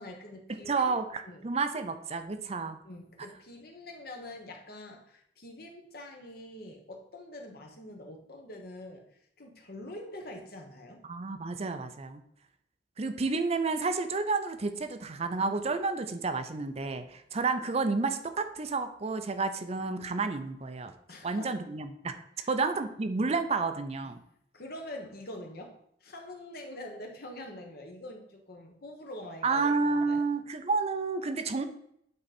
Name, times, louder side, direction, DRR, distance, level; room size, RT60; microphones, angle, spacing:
voice 1, 0.0-1.0 1.2-1.4 2.8-9.0 9.4-11.0 21.1-21.6 22.4-22.5 24.5-30.2, left 1 dB, 60° left, 2 dB, 1.3 m, -45 dB
voice 2, 0.7-2.8 11.1-12.2 13.0-20.9 21.2-22.1 22.5-24.2 29.4-31.6, right 4 dB, 35° right, 9 dB, 0.5 m, -30 dB
8.7 x 3.9 x 4.3 m, 0.71 s
head